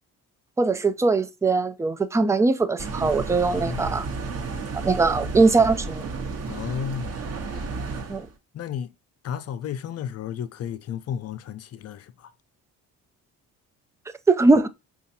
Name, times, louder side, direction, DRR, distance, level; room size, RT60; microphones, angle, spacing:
voice 1, 0.6-4.1 4.8-6.0 8.1-8.3 14.3-14.7, right 3 dB, 10° right, 0.3 m, -21 dB
sound 1, 2.8-8.3, right 4 dB, 45° right, 0.9 m, -32 dB
voice 2, 3.4-4.0 6.5-7.2 8.5-8.9 9.2-12.3, left 8 dB, 45° left, 0.5 m, -33 dB
5.0 x 2.4 x 2.7 m
supercardioid pair, 80°, 35 cm